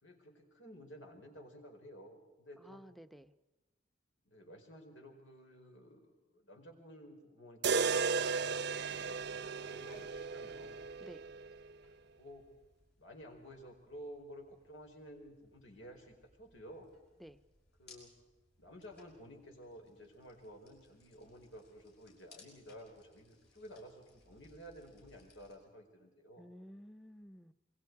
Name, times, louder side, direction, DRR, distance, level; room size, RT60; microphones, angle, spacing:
voice 1, 0.0-2.8 4.2-10.8 12.2-12.5 13.0-16.9 17.8-18.1 18.6-26.5, equal, 90° left, 3 dB, 4.8 m, -53 dB
voice 2, 2.6-3.3 11.0-11.3 17.2-17.4 26.4-27.5, equal, ahead, 10 dB, 0.7 m, -53 dB
sound 1, 7.6-11.7, right 5 dB, 60° right, 0.7 m, -35 dB
sound 2, 8.9-25.6, left 3 dB, 60° left, 6.7 m, -65 dB
27.5 x 23.0 x 4.8 m, 1.1 s
head